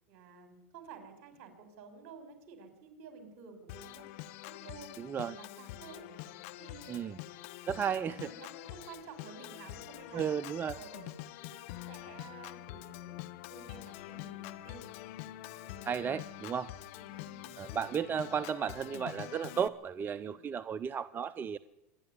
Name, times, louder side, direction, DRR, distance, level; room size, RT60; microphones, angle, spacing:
voice 1, 0.1-4.1 4.6-6.1 6.6-7.1 7.9-10.2 10.7-11.2 11.4-13.2 13.5-14.8 15.4-15.9 16.9-17.7 20.1-20.4, right 5 dB, 55° right, 8 dB, 5.1 m, -52 dB
Organ, 3.7-19.7, left 15 dB, 65° left, 1.1 m, -46 dB
voice 2, 5.0-5.4 6.9-7.2 7.7-8.3 10.1-10.8 15.9-16.7 17.6-21.6, right 7 dB, 25° right, 15 dB, 0.6 m, -34 dB
26.0 x 10.5 x 9.5 m, 0.93 s
hypercardioid pair, 105°, 8 cm